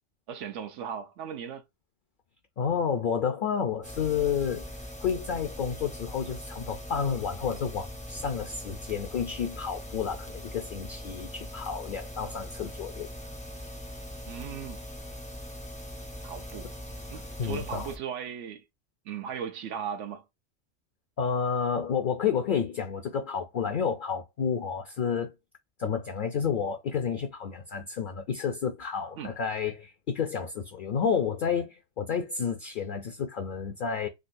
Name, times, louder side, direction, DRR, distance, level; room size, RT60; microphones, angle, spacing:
voice 1, 0.3-1.6 14.3-14.8 16.2-16.7 17.1-18.6 19.0-20.2 29.2-29.3, right 8 dB, 85° right, 1.0 m, -37 dB
voice 2, 2.6-4.7 5.0-13.1 17.4-17.9 21.2-25.3 25.8-34.1, left 7 dB, 55° left, 0.6 m, -30 dB
sound 1, 3.8-18.0, left 1 dB, 10° left, 0.5 m, -41 dB
3.8 x 2.2 x 2.6 m
omnidirectional pair, 1.2 m